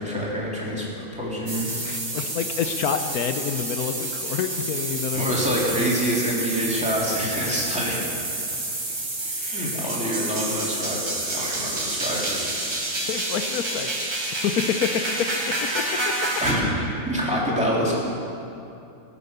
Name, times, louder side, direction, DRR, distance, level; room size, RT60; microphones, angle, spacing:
voice 1, 0.0-1.7 5.1-8.0 9.2-11.0 11.3-12.4 16.4-17.9, equal, 5° right, -6 dB, 3.0 m, -26 dB
sound 1, 1.5-16.5, right 2 dB, 85° right, 3.1 m, -29 dB
voice 2, 1.8-5.4 13.1-14.1 14.4-16.1, left 8 dB, 80° left, 7 dB, 1.1 m, -28 dB
18.5 x 8.4 x 6.8 m, 2.7 s
omnidirectional pair, 1.6 m